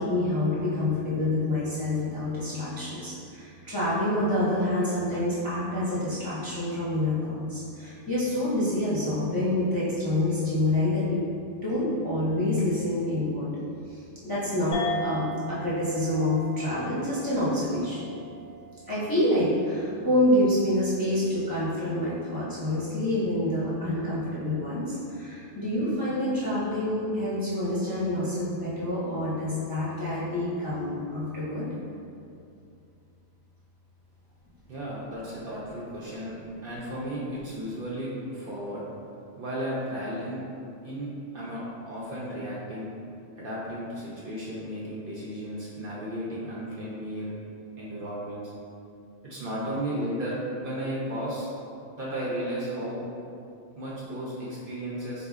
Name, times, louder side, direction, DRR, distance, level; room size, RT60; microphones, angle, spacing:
voice 1, 0.0-11.2 11.6-13.5 13.9-18.1 18.9-31.6, left 1 dB, 25° left, -11 dB, 0.5 m, -27 dB
sound 1, 14.7-19.6, right 1 dB, 85° left, 0.9 m, -38 dB
voice 2, 34.7-38.8 39.4-40.4 40.8-41.1 41.3-43.1 43.3-47.3 47.8-48.5 49.2-50.3 50.6-51.5 51.9-53.0 53.8-55.3, equal, 60° right, -6 dB, 0.6 m, -34 dB
3.8 x 2.7 x 2.4 m, 2.5 s
omnidirectional pair, 1.2 m